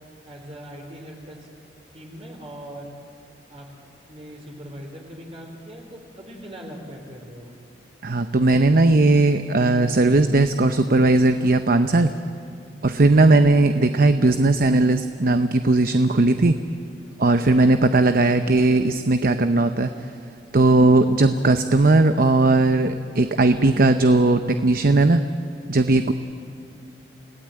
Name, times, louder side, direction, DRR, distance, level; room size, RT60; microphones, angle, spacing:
voice 1, 0.2-1.5 1.9-2.9 3.5-3.8 4.1-7.5, equal, 35° right, 1 dB, 3.5 m, -40 dB
voice 2, 8.0-12.1 12.8-16.5 17.2-20.1 20.5-25.2 25.7-26.1, right 2 dB, 55° right, 9 dB, 0.8 m, -18 dB
29.5 x 17.0 x 8.8 m, 2.4 s
head